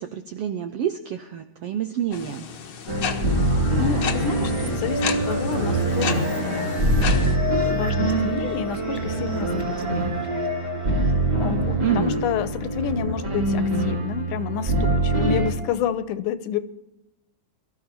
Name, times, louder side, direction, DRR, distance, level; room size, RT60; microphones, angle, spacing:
voice 1, 0.0-2.5 11.8-12.3, right 10 dB, 80° right, 7 dB, 1.3 m, -28 dB
sound 1, 2.1-7.4, left 6 dB, 60° left, 1.2 m, -33 dB
sound 2, 2.9-15.5, right 1 dB, 35° right, 4.0 m, -24 dB
voice 2, 3.8-10.2 11.3-16.6, left 9 dB, 80° left, 12 dB, 2.2 m, -30 dB
sound 3, 3.8-12.4, right 1 dB, 5° right, 1.5 m, -41 dB
23.5 x 13.0 x 4.4 m, 0.94 s
omnidirectional pair, 3.6 m